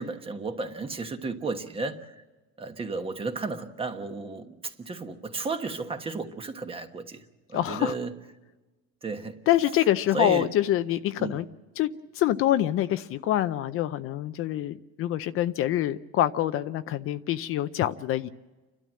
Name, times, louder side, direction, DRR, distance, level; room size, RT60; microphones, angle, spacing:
voice 1, 0.0-2.1 2.6-7.2 7.5-8.1 9.0-9.3 10.1-10.5 11.2-11.4, right 3 dB, 20° right, 1.3 m, -33 dB
voice 2, 7.5-8.0 9.5-11.4 11.8-11.9 12.1-18.3, left 13 dB, 50° left, 0.6 m, -25 dB
30.0 x 12.5 x 7.6 m
cardioid pair, 155°, 29 cm